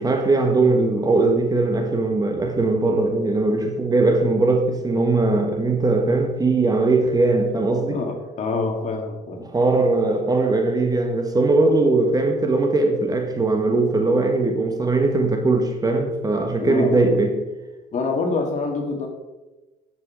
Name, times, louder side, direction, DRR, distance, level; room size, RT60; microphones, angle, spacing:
voice 1, 0.0-8.0 9.4-17.3, right 3 dB, 20° right, 1.2 m, -20 dB
voice 2, 7.9-9.4 16.6-17.1 17.9-19.1, left 3 dB, 45° left, 1.8 m, -26 dB
9.3 x 6.2 x 4.7 m
cardioid pair, 110°, 17 cm